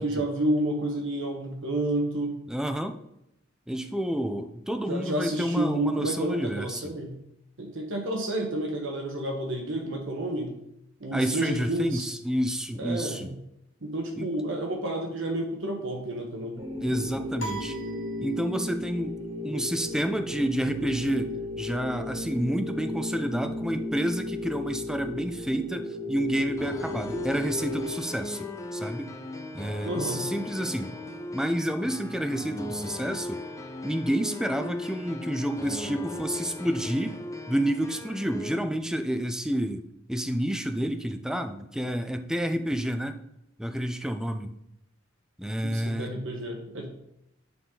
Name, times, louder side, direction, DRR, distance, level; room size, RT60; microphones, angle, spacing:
voice 1, 0.0-2.4 4.9-7.1 7.6-10.5 11.0-12.1 12.8-13.3 13.8-16.6 29.8-30.3 45.6-46.8, right 1 dB, 65° right, 2 dB, 1.2 m, -30 dB
voice 2, 2.5-3.0 3.7-6.9 11.1-13.3 14.2-14.3 16.8-17.8 18.2-19.2 19.4-29.1 29.5-30.9 31.3-33.4 33.8-37.2 37.5-43.2 43.6-44.6 45.4-46.1, equal, 5° right, 7 dB, 0.4 m, -29 dB
sound 1, 16.6-27.9, left 1 dB, 25° right, 1.4 m, -35 dB
sound 2, 17.4-18.8, right 2 dB, 65° left, 1.3 m, -40 dB
sound 3, 26.6-38.6, left 2 dB, 15° left, 0.8 m, -38 dB
9.2 x 4.1 x 3.8 m, 0.82 s
head